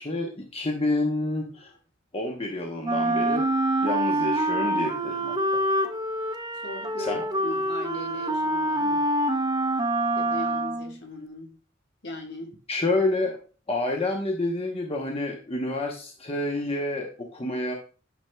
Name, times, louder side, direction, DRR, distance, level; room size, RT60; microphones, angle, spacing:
voice 1, 0.0-1.7 2.1-3.5 3.8-5.6 7.0-7.2 12.7-13.4 13.7-17.7, left 2 dB, 30° left, 0.9 m, -28 dB
Wind instrument woodwind instrument, 2.8-11.0, right 1 dB, 20° right, 0.6 m, -26 dB
voice 2, 6.6-9.1 10.1-11.5 12.0-12.5, left 1 dB, 60° left, 1.4 m, -38 dB
9.3 x 5.7 x 2.2 m
head